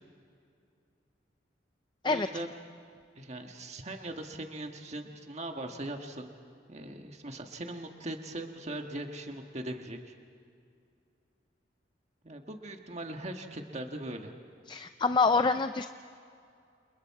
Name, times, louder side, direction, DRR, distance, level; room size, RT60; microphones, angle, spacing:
voice 1, 2.0-2.5 3.1-6.3 6.7-10.1 12.2-14.3, right 1 dB, 35° right, 4 dB, 1.5 m, -40 dB
voice 2, 14.7-15.9, left 4 dB, 25° left, 9 dB, 0.5 m, -26 dB
29.0 x 29.0 x 4.8 m, 2.4 s
head